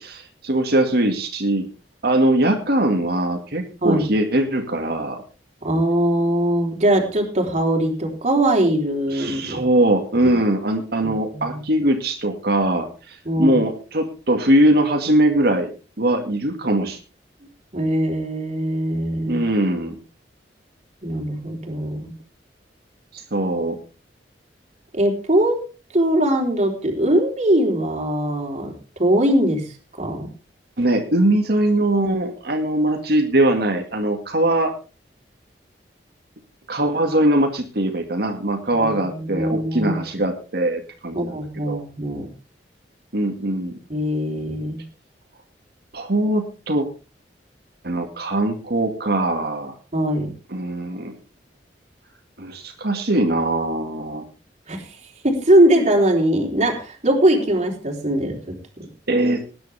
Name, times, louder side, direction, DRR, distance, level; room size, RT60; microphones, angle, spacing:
voice 1, 0.0-1.7 2.0-5.2 9.1-15.7 16.0-17.0 19.3-20.0 23.1-23.8 30.8-34.7 36.7-41.8 43.1-43.8 45.9-46.9 47.8-49.7 50.5-51.1 52.4-54.3 59.1-59.4, right 1 dB, 65° right, 3 dB, 2.1 m, -21 dB
voice 2, 5.6-9.6 10.2-10.3 11.0-11.6 13.3-13.6 17.7-19.4 21.0-22.2 24.9-25.6 25.9-28.7 29.0-29.7 30.0-30.3 38.8-40.0 41.1-42.3 43.9-44.8 49.9-50.3 54.7-54.9 55.2-58.9, right 1 dB, 40° right, 1 dB, 3.8 m, -21 dB
20.0 x 10.5 x 3.5 m, 0.33 s
head